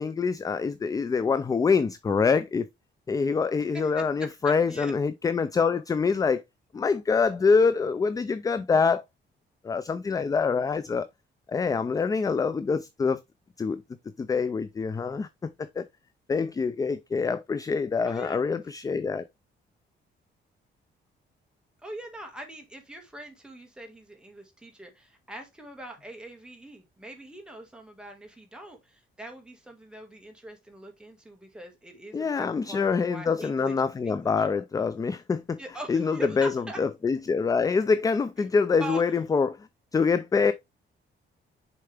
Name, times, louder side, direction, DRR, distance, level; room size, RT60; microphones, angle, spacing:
voice 1, 0.0-2.7 3.1-6.4 6.7-9.0 9.6-11.1 11.5-13.2 13.6-13.8 14.2-15.8 16.3-19.2 32.1-35.6 35.9-36.5 36.8-39.6 39.9-40.5, left 5 dB, 20° left, 0.4 m, -25 dB
voice 2, 3.7-4.9 18.0-18.4 21.8-33.8 34.0-34.5 35.6-36.8 38.4-38.5 38.8-39.0, right 1 dB, 5° right, 1.7 m, -42 dB
6.7 x 4.5 x 3.3 m
cardioid pair, 155°, 19 cm